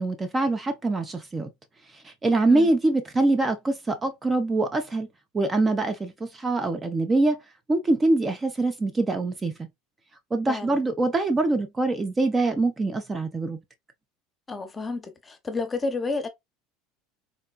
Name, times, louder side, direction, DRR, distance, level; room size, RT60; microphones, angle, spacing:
voice 1, 0.0-1.5 2.0-5.1 5.3-7.4 7.7-9.7 10.3-13.6, right 2 dB, 20° right, 0.6 m, -24 dB
voice 2, 10.5-10.8 14.5-16.3, left 3 dB, 25° left, 0.9 m, -30 dB
4.0 x 2.1 x 2.3 m
hypercardioid pair, 85°, 0 cm